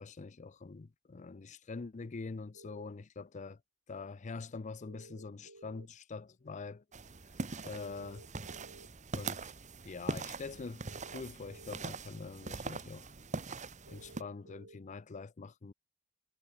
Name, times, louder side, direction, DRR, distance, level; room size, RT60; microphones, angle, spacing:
voice 1, 0.0-3.6 3.9-6.8 7.6-8.2 9.1-9.5 9.8-13.1 13.9-15.7, left 4 dB, 35° left, 0.5 m, -44 dB
sound 1, 2.5-2.9 4.9-5.9 7.9-8.9 10.9-11.9 13.9-14.8, right 2 dB, 85° right, 6.4 m, -55 dB
sound 2, 6.9-14.2, right 3 dB, 35° right, 1.3 m, -42 dB
head